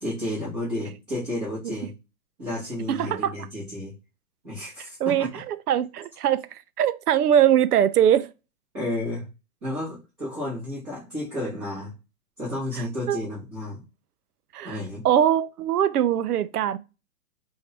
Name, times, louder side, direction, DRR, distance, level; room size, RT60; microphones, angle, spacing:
voice 1, 0.0-1.9 2.4-3.9 4.4-5.3 8.7-9.3 9.6-11.9 12.4-13.8 14.6-15.0, left 1 dB, 15° right, 1.3 m, -32 dB
voice 2, 2.9-3.5 5.0-8.3 13.1-13.2 14.5-14.8 15.0-16.8, right 10 dB, 75° right, 0.6 m, -22 dB
3.5 x 2.6 x 3.2 m
hypercardioid pair, 175°, 46 cm